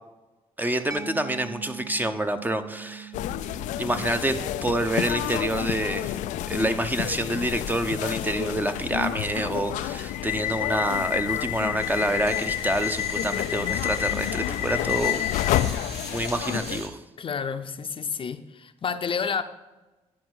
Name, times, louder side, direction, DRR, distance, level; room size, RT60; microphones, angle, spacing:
voice 1, 0.6-3.1 3.8-6.2 6.5-15.2 15.6-15.8 16.1-17.0, right 1 dB, 15° right, 9 dB, 0.7 m, -27 dB
Mallet percussion, 0.9-8.3, right 8 dB, 30° right, 1.2 m, -44 dB
sound 1, 3.1-16.8, left 12 dB, 90° left, 0.4 m, -29 dB
sound 2, 11.8-16.9, right 3 dB, 60° right, 1.6 m, -41 dB
voice 2, 17.2-19.4, left 6 dB, 45° left, 9 dB, 0.6 m, -30 dB
9.9 x 4.3 x 6.2 m, 1.1 s
cardioid pair, 80°, 12 cm